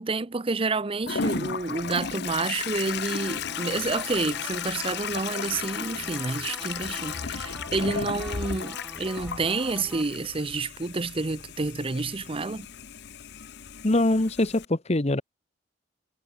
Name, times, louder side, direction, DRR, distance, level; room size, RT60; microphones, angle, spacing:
voice 1, 0.0-12.7, right 3 dB, 30° right, 0.6 m, -29 dB
Drip, 0.6-0.9 1.6-2.0 2.6-3.0 3.6-3.9 4.6-5.0 5.6-5.9 6.8-7.1 8.0-8.3 9.2-9.5 10.4-10.8 11.7-11.9, right 5 dB, 65° right, 5.0 m, -58 dB
Toilet flush, 1.1-14.7, left 6 dB, 55° left, 0.7 m, -34 dB
sound 1, 3.2-10.0, right 1 dB, 5° right, 1.9 m, -45 dB
voice 2, 13.8-15.2, left 1 dB, 30° left, 1.1 m, -23 dB
head